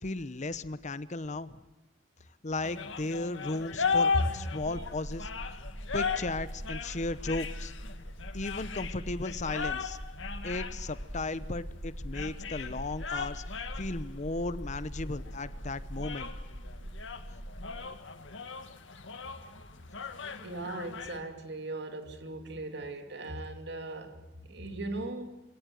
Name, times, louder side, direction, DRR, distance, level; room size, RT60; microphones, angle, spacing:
voice 1, 0.0-1.6 2.4-5.3 5.9-7.7 8.3-10.0 10.4-16.3 24.5-24.6, left 2 dB, 40° left, 0.9 m, -35 dB
sound 1, 2.6-21.2, left 5 dB, 90° left, 1.9 m, -37 dB
sound 2, 4.6-17.7, equal, 80° right, 4.4 m, -42 dB
voice 2, 20.4-25.4, right 2 dB, 65° right, 2.6 m, -39 dB
26.0 x 17.5 x 7.7 m
head